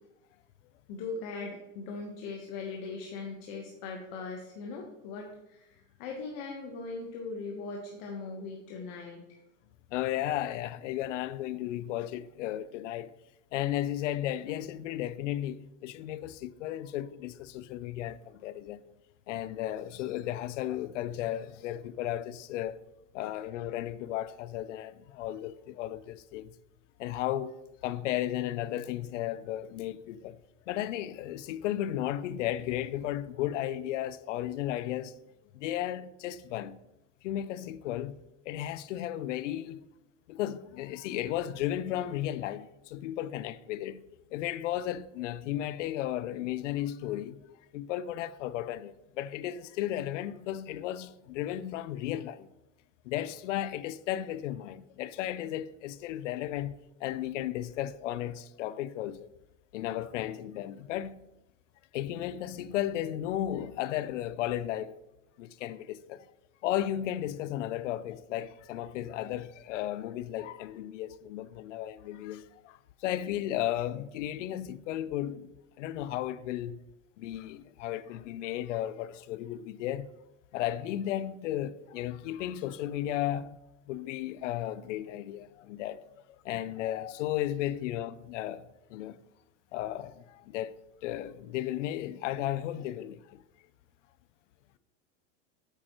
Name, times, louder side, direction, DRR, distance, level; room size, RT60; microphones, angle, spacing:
voice 1, 0.9-9.2, left 4 dB, 50° left, 1.2 m, -40 dB
voice 2, 9.9-13.1 13.5-18.8 19.3-22.8 23.1-26.5 27.0-27.6 27.8-30.4 30.7-35.2 35.5-36.8 37.2-38.2 38.4-39.8 40.3-44.0 44.3-47.4 47.7-52.5 53.0-56.7 57.0-59.3 59.7-61.2 61.9-65.0 65.4-66.3 66.6-76.8 77.2-80.1 80.5-83.6 83.9-89.2 89.7-90.7 91.0-93.4, left 12 dB, 80° left, 0.6 m, -34 dB
8.5 x 7.6 x 3.0 m
supercardioid pair, 140°, 36 cm